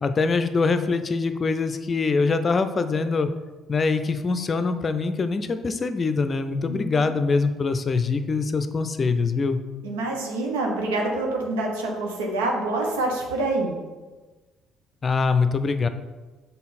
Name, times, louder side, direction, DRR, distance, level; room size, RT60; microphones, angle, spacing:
voice 1, 0.0-3.3 3.7-9.6 15.0-15.9, left 4 dB, 40° left, 9 dB, 0.5 m, -23 dB
voice 2, 6.7-7.1 9.8-13.8, right 2 dB, 85° right, 1 dB, 0.9 m, -26 dB
5.6 x 4.0 x 4.2 m, 1.3 s
hypercardioid pair, 55°, 0 cm